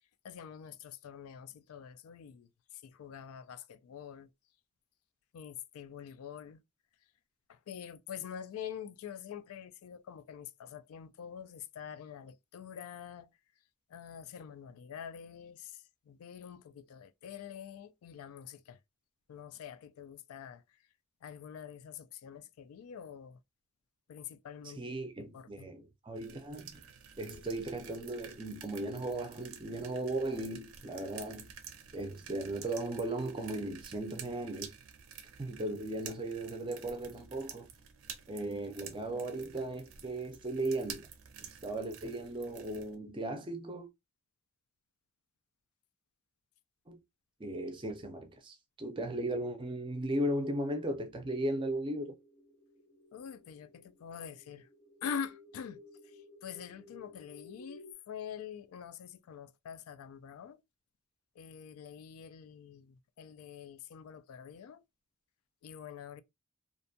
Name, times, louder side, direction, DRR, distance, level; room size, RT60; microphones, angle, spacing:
voice 1, 0.2-2.5 2.8-4.3 5.3-6.6 7.5-13.3 13.9-15.8 16.1-18.8 19.3-20.6 21.2-23.4 24.1-24.8 25.3-25.7 53.1-54.7 55.0-55.8 56.4-60.6 61.4-64.8 65.6-66.2, left 8 dB, 85° left, 0.3 m, -45 dB
voice 2, 24.6-26.8 27.2-31.5 31.9-34.7 35.4-37.7 38.3-41.1 41.6-43.9 46.9-47.0 47.4-52.2, right 1 dB, 25° right, 0.4 m, -37 dB
sound 1, 26.2-43.0, right 8 dB, 80° right, 0.5 m, -51 dB
sound 2, 51.0-57.9, left 3 dB, 45° left, 0.6 m, -57 dB
2.5 x 2.2 x 2.6 m
head